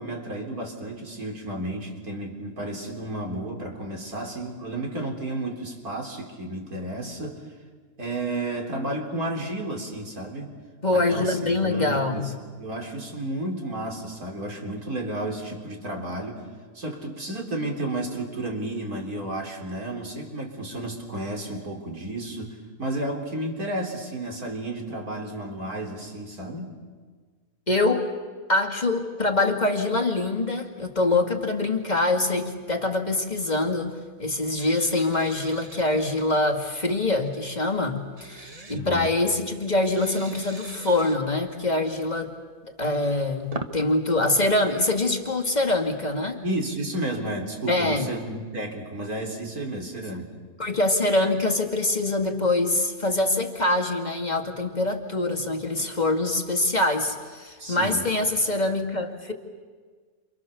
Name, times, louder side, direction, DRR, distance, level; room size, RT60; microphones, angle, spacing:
voice 1, 0.0-7.4 8.0-10.5 10.9-16.4 16.7-26.7 38.7-39.1 46.4-50.3 57.6-58.0, right 1 dB, 65° right, 1 dB, 4.4 m, -32 dB
voice 2, 10.8-12.3 27.7-28.1 28.5-33.9 34.2-42.3 42.8-46.4 47.7-48.1 50.6-59.3, left 2 dB, 25° left, 2 dB, 2.5 m, -24 dB
sound 1, 34.6-36.2 38.1-38.8 39.9-41.2 42.9-43.8, right 2 dB, 25° right, 1.3 m, -41 dB
29.5 x 28.5 x 7.1 m, 1.5 s
omnidirectional pair, 1.7 m